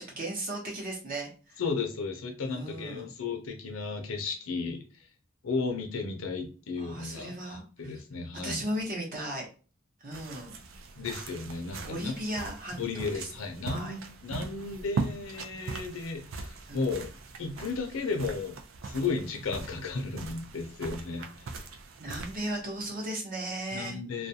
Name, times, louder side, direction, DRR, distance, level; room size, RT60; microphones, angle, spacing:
voice 1, 0.0-1.6 2.4-3.1 6.8-7.9 8.4-9.5 10.0-10.6 11.9-12.8 13.1-13.3 13.7-14.0 16.7-16.8 22.0-24.0, right 1 dB, 40° right, -1 dB, 0.8 m, -36 dB
voice 2, 1.6-4.8 5.4-8.6 11.0-12.1 12.8-17.1 17.4-18.6 18.8-21.5 23.7-24.3, left 4 dB, 70° left, 4 dB, 0.6 m, -34 dB
sound 1, 10.1-22.9, right 3 dB, 65° right, 0.4 m, -40 dB
2.4 x 2.1 x 2.7 m, 0.36 s
head